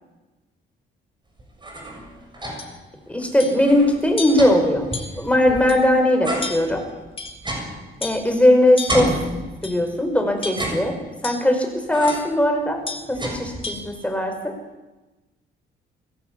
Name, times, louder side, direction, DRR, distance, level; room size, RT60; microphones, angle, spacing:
sound 1, 1.4-2.8 3.2-3.3 3.6-5.8 6.2-8.5 8.9-10.0 10.4-11.3 11.9-12.4 12.8-13.9, right 1 dB, 25° right, 7.2 m, -31 dB
sound 2, 2.6-2.7 3.4-3.7 4.2-4.5 4.9-5.3 5.7-5.8 6.4-6.8 7.2-7.6 8.0-8.3 8.8-9.1 9.6-9.9 10.4-10.8 11.2-11.5 12.1-12.3 12.9-13.1 13.6-13.9, left 3 dB, 30° left, 3.7 m, -33 dB
voice 1, 3.1-4.9 5.2-6.8 8.0-9.1 9.6-14.5, left 1 dB, 5° left, 4 dB, 5.6 m, -19 dB
23.5 x 16.5 x 8.5 m, 1.1 s
cardioid pair, 90°, 20 cm